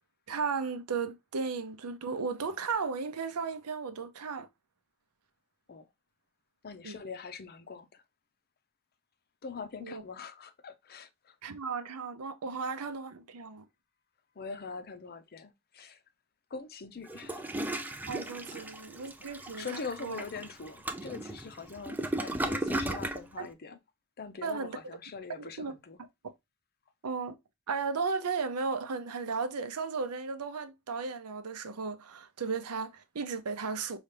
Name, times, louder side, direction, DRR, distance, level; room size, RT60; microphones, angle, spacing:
voice 1, 0.3-4.5 6.8-7.0 9.8-10.0 11.4-13.6 18.1-19.7 20.0-20.2 22.7-23.0 23.4-23.5 24.4-25.0 25.4-25.8 27.0-27.4 27.7-34.0, right 5 dB, 85° right, 0.7 m, -35 dB
voice 2, 6.6-8.0 9.4-11.4 14.4-16.0 16.5-17.5 18.5-18.7 19.6-23.8 24.2-26.0, left 5 dB, 45° left, 0.6 m, -43 dB
Toilet flush, 17.1-23.2, right 1 dB, 10° right, 0.3 m, -36 dB
5.5 x 2.4 x 3.3 m
head